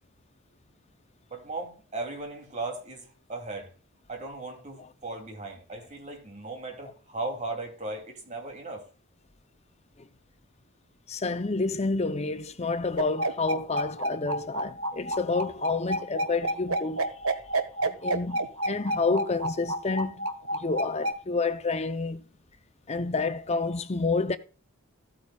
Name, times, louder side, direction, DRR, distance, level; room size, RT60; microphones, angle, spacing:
voice 1, 1.3-3.7 4.1-8.8, right 2 dB, 35° right, 2.8 m, -37 dB
voice 2, 11.1-17.1 17.8-22.2 22.9-24.4, left 3 dB, 30° left, 0.6 m, -29 dB
sound 1, 13.0-21.1, right 1 dB, 80° right, 1.3 m, -29 dB
14.5 x 8.6 x 2.3 m
head